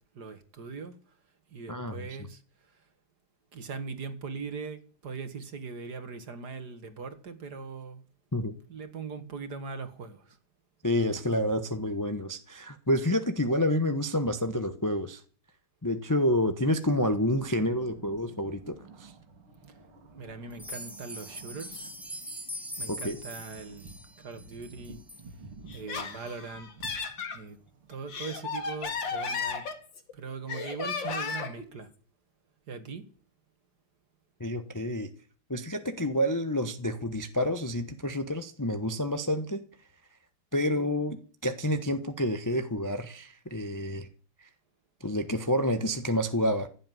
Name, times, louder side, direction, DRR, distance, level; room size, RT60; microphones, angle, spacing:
voice 1, 0.1-1.0 1.5-2.8 3.5-8.0 8.7-10.4 19.7-19.8 20.2-21.9 22.8-25.0 25.7-26.7 27.3-27.6 27.9-29.6 30.1-31.9 32.7-33.0, right 4 dB, 50° right, 2.2 m, -40 dB
voice 2, 10.8-15.2 15.8-19.1 22.9-23.2 34.4-35.1 35.5-39.6 40.5-44.1 44.4-44.5 45.0-46.7, left 1 dB, 25° left, 0.4 m, -29 dB
sound 1, 17.1-28.0, right 3 dB, 80° right, 3.3 m, -52 dB
sound 2, 20.5-25.2 25.7-25.8 26.3-26.4 26.9-27.0, equal, ahead, 2.9 m, -42 dB
Laughter, 25.7-27.4 27.9-30.1 30.5-31.6, left 5 dB, 55° left, 2.7 m, -34 dB
16.0 x 7.8 x 9.4 m
omnidirectional pair, 2.4 m